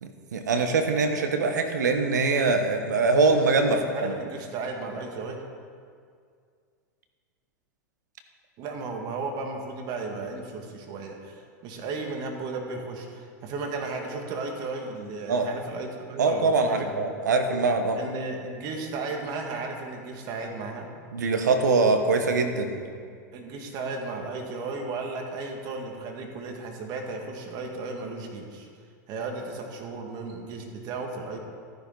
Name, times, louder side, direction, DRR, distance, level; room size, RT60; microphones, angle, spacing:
voice 1, 0.0-4.1 15.3-15.5 16.2-18.0 21.1-22.8, right 3 dB, 85° right, 6 dB, 1.2 m, -23 dB
voice 2, 3.7-5.4 8.6-17.1 18.0-20.9 23.3-28.7 29.1-31.4, right 3 dB, 45° right, 2 dB, 2.0 m, -35 dB
13.0 x 10.5 x 4.0 m, 2.1 s
hypercardioid pair, 105°, 9 cm